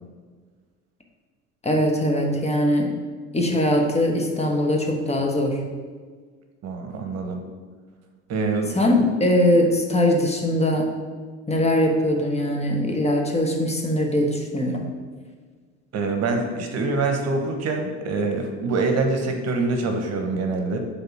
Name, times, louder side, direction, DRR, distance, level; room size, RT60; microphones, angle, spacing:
voice 1, 1.6-3.0 3.3-5.6 8.7-10.9 11.5-14.9, left 1 dB, 20° left, 1 dB, 1.3 m, -21 dB
voice 2, 6.6-7.4 8.3-8.8 15.9-20.8, right 3 dB, 45° right, 4 dB, 1.1 m, -25 dB
6.6 x 3.8 x 6.0 m, 1.5 s
hypercardioid pair, 70°, 35 cm